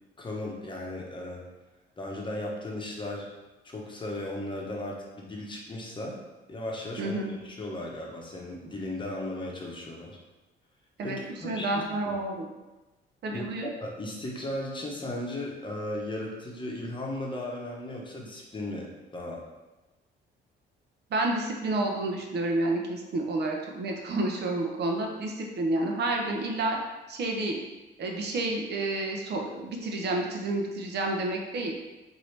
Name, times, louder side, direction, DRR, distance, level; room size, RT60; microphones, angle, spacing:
voice 1, 0.2-1.4 2.0-3.3 3.6-6.2 6.5-10.2 11.0-11.8 13.3-19.4, left 1 dB, 25° left, -2 dB, 0.9 m, -36 dB
voice 2, 7.0-7.3 11.0-12.5 13.2-13.7 21.1-26.8 27.1-27.6 28.0-31.8, right 2 dB, 60° right, 1 dB, 0.7 m, -30 dB
4.6 x 2.7 x 3.2 m, 1.1 s
cardioid pair, 105°, 20 cm